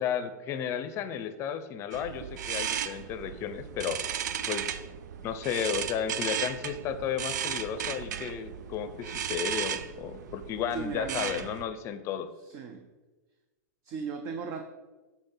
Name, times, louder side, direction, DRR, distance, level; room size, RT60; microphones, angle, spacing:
voice 1, 0.0-4.0 4.5-4.8 5.2-12.3, left 8 dB, 30° left, 10 dB, 0.6 m, -33 dB
sound 1, 1.9-11.6, right 9 dB, 80° right, 0.5 m, -35 dB
voice 2, 10.7-11.4 12.4-12.9 13.8-14.6, right 6 dB, 35° right, 6 dB, 0.6 m, -37 dB
7.9 x 4.4 x 5.5 m, 1.2 s
supercardioid pair, 145°, 9 cm